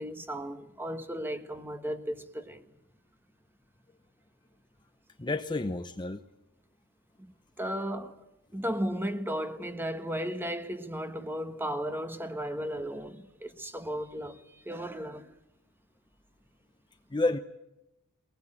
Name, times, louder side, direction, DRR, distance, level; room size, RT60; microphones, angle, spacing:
voice 1, 0.0-2.7 7.2-7.3 7.6-8.2 8.5-15.3, equal, 10° right, 1.4 m, -35 dB
voice 2, 5.2-6.2 17.1-17.4, left 2 dB, 20° left, 0.8 m, -30 dB
22.0 x 19.5 x 8.8 m
head